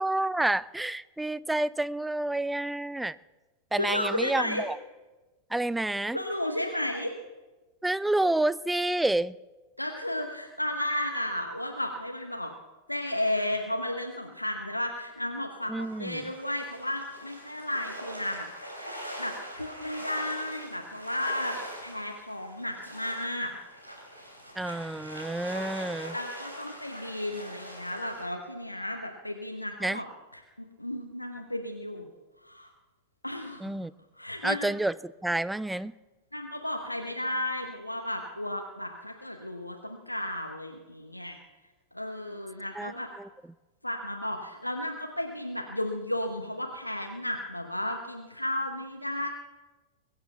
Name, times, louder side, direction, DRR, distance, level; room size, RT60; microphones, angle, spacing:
voice 1, 0.0-3.2 3.7-4.8 5.5-6.2 7.8-9.4 15.7-16.3 24.6-26.1 29.8-30.0 33.6-33.9 34.4-34.9 35.2-35.9 42.8-42.9 43.2-43.3, right 2 dB, 5° right, 19 dB, 0.4 m, -29 dB
voice 2, 3.8-4.6 6.1-7.1 9.8-12.5 12.9-18.8 19.2-23.5 25.6-25.7 26.1-30.1 30.3-32.1 32.4-32.7 33.2-33.7 34.1-34.7 36.3-41.4 41.9-43.1 43.8-49.3, left 1 dB, 85° left, 3 dB, 1.0 m, -33 dB
sound 1, 15.8-28.2, equal, 90° right, 3.2 m, -43 dB
21.5 x 8.0 x 6.8 m, 1.2 s
figure-of-eight pair, 90°, 0 cm